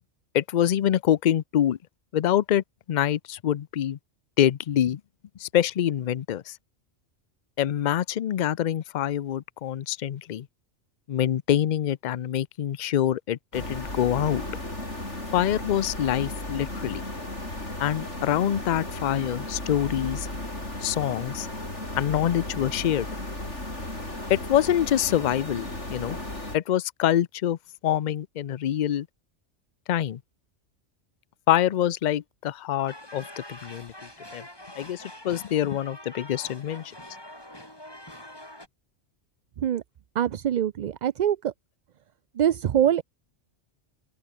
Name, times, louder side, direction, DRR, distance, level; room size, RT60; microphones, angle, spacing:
voice 1, 0.3-1.8 2.1-2.6 2.9-4.0 4.4-5.0 5.4-6.6 7.6-10.5 11.1-14.4 15.3-17.0 17.8-20.3 20.8-21.5 22.0-23.1 24.3-26.2 26.5-29.1 29.9-30.2 31.5-33.9 34.3-34.4 34.8-36.9, left 11 dB, 50° left, 0.5 m, -25 dB
sound 1, 13.5-26.6, left 1 dB, 70° left, 7.6 m, -35 dB
sound 2, 32.9-38.7, left 1 dB, 20° left, 5.3 m, -45 dB
voice 2, 40.2-41.5 42.4-43.0, right 10 dB, 60° right, 0.5 m, -24 dB
open air
omnidirectional pair, 1.2 m